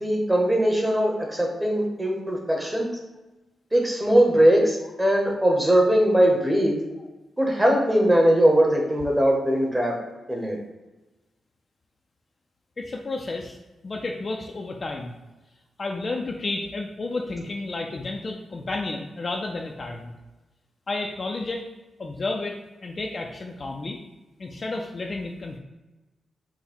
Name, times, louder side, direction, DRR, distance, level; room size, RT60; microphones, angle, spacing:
voice 1, 0.0-2.9 3.7-6.8 7.4-9.9 10.3-10.6, equal, 10° right, 0 dB, 0.9 m, -20 dB
voice 2, 12.8-13.6 13.8-15.1 15.8-20.1 20.9-21.7 22.0-24.0 24.4-25.6, left 2 dB, 30° left, 2 dB, 0.4 m, -31 dB
5.8 x 2.1 x 4.3 m, 1.1 s
wide cardioid pair, 155°, 0 cm